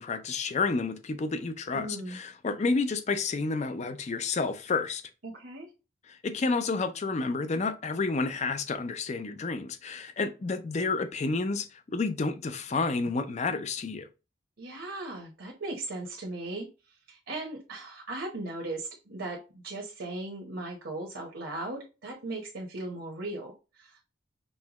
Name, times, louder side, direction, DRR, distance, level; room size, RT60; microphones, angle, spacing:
voice 1, 0.0-5.0 6.1-14.1, left 4 dB, 35° left, 0.4 m, -30 dB
voice 2, 1.7-2.2 5.2-5.7 14.6-16.7 17.1-24.1, right 2 dB, 70° right, 1.0 m, -38 dB
5.4 x 2.2 x 2.9 m
head